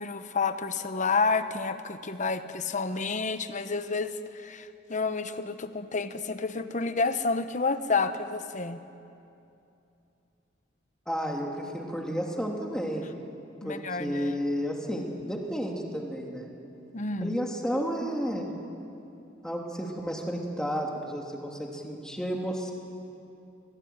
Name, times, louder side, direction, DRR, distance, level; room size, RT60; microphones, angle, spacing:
voice 1, 0.0-8.8 13.6-14.4 16.9-17.3, left 4 dB, 40° left, 10 dB, 1.1 m, -30 dB
voice 2, 11.1-13.0 13.6-16.5 17.2-18.5 19.4-22.7, equal, 5° left, 0 dB, 2.9 m, -32 dB
25.0 x 18.5 x 9.6 m, 2.7 s
head